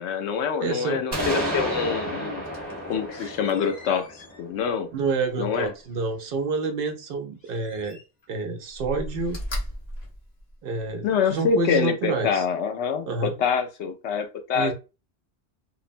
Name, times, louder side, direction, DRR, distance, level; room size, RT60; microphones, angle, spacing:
voice 1, 0.0-2.4 2.8-4.9 5.4-5.7 11.0-14.7, left 6 dB, 85° left, 6 dB, 0.9 m, -26 dB
voice 2, 0.6-1.0 4.9-8.0 8.3-9.4 10.6-12.4 13.0-13.3 14.5-14.7, right 4 dB, 65° right, 5 dB, 0.7 m, -28 dB
sound 1, 1.1-4.9, equal, 25° right, 1.0 m, -31 dB
Slam, 2.4-6.3 7.4-8.3 8.7-11.0 11.5-11.6, equal, 40° left, 0.8 m, -39 dB
2.9 x 2.0 x 2.5 m, 0.30 s
omnidirectional pair, 1.1 m